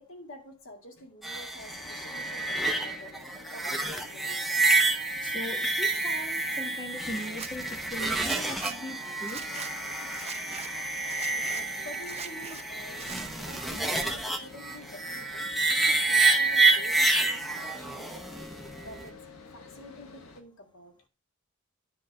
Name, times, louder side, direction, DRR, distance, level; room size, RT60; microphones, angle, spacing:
voice 1, 0.0-3.1 3.5-4.6 11.3-19.1 19.5-20.9, left 1 dB, 70° left, 2.1 m, -48 dB
sound 1, 1.2-19.1, right 3 dB, ahead, 0.9 m, -28 dB
sound 2, 1.6-20.4, left 3 dB, 85° left, 1.4 m, -50 dB
voice 2, 5.2-9.5, left 1 dB, 20° left, 1.4 m, -39 dB
Zipper (clothing), 7.2-7.5 8.2-8.8 9.2-9.7 10.1-10.7 11.1-11.6 12.0-12.6 12.9-13.8 14.1-14.7, right 7 dB, 30° right, 0.7 m, -42 dB
9.8 x 3.8 x 6.7 m
head